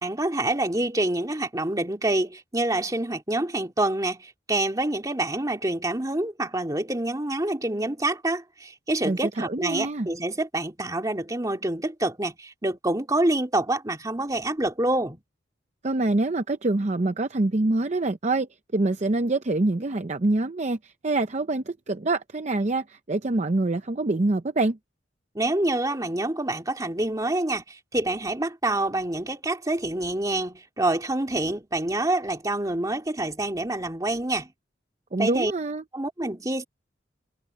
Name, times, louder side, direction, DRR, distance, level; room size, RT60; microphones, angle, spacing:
voice 1, 0.0-15.2 25.3-34.5 35.2-35.5 35.9-36.6, right 2 dB, 20° right, 2.6 m, -27 dB
voice 2, 9.0-10.1 15.8-24.8 35.1-35.8, right 2 dB, 40° right, 0.6 m, -25 dB
head